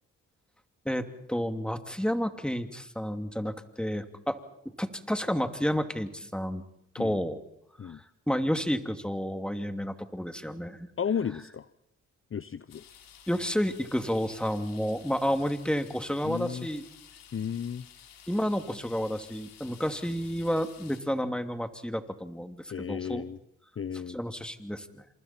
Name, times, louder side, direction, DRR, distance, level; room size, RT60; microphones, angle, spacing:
voice 1, 0.8-4.4 4.8-6.6 6.9-7.4 7.8-10.9 13.3-16.8 18.3-23.2 24.1-25.0, equal, 5° left, 7 dB, 2.7 m, -31 dB
voice 2, 11.0-11.7 12.3-12.8 16.2-16.7 17.3-17.9 22.7-23.4 23.8-24.2, left 7 dB, 40° left, 15 dB, 0.8 m, -33 dB
sound 1, 12.7-21.0, left 9 dB, 85° left, 3.2 m, -53 dB
28.5 x 27.5 x 4.5 m, 0.79 s
supercardioid pair, 45°, 34 cm